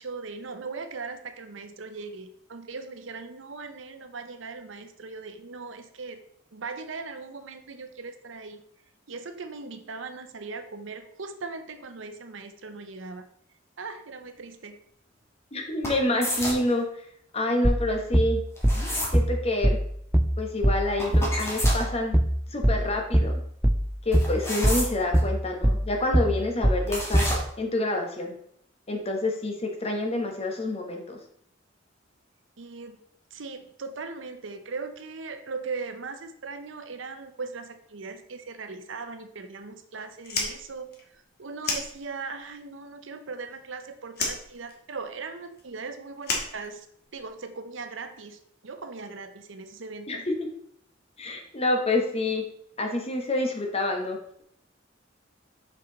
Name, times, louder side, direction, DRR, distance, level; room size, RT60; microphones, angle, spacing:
voice 1, 0.0-6.2 6.5-8.6 9.1-13.3 13.8-14.8 32.6-33.0 33.3-46.9 47.1-50.3, right 4 dB, 75° right, 9 dB, 0.7 m, -39 dB
voice 2, 15.5-16.9 17.3-18.4 19.1-19.8 20.4-22.2 22.5-23.3 24.0-27.3 27.6-28.3 28.9-31.2 50.1-50.5 51.2-52.4 52.8-54.2, left 2 dB, 30° left, 2 dB, 1.1 m, -27 dB
sound 1, 15.8-16.7 18.6-19.2 21.0-21.9 24.1-25.2 26.9-27.4, equal, 15° left, 1.7 m, -30 dB
sound 2, 17.6-27.4, equal, 5° right, 0.3 m, -22 dB
Fire, 40.2-42.5 42.8-43.8 44.1-47.3, left 3 dB, 55° left, 1.4 m, -33 dB
6.0 x 5.5 x 3.9 m, 0.69 s
head